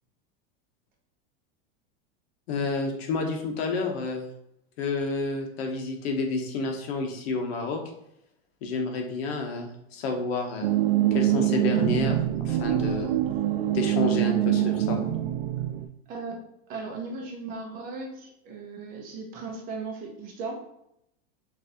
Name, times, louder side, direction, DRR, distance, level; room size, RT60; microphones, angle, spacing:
voice 1, 2.5-4.3 4.8-7.8 8.6-10.7 11.1-12.2 12.4-13.2 13.7-15.0, left 3 dB, 75° left, 3 dB, 1.0 m, -29 dB
sound 1, 10.6-15.8, right 12 dB, 75° right, 0.5 m, -24 dB
voice 2, 16.1-16.4 16.7-20.6, right 3 dB, 30° right, 0 dB, 0.7 m, -37 dB
5.9 x 2.6 x 2.8 m, 0.79 s
supercardioid pair, 170°, 31 cm